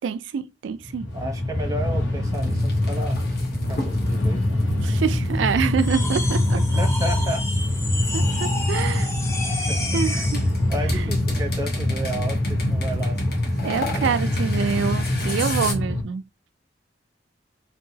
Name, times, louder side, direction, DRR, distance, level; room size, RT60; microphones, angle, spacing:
voice 1, 0.0-1.1 4.8-6.6 8.1-9.1 9.9-10.4 10.9-11.1 13.6-16.2, right 6 dB, 85° right, 0.3 m, -26 dB
Train, 0.8-16.0, left 1 dB, 85° left, 0.8 m, -24 dB
voice 2, 1.1-3.2 3.7-4.6 5.6-5.7 6.8-7.4 9.7-10.1 10.7-13.1 13.6-14.2, right 1 dB, 20° right, 0.8 m, -32 dB
sound 1, 2.3-6.9 7.6-9.9 10.2-15.7, left 3 dB, 55° left, 0.9 m, -35 dB
sound 2, 5.8-10.5, left 2 dB, 15° left, 0.5 m, -31 dB
2.7 x 2.1 x 2.7 m
head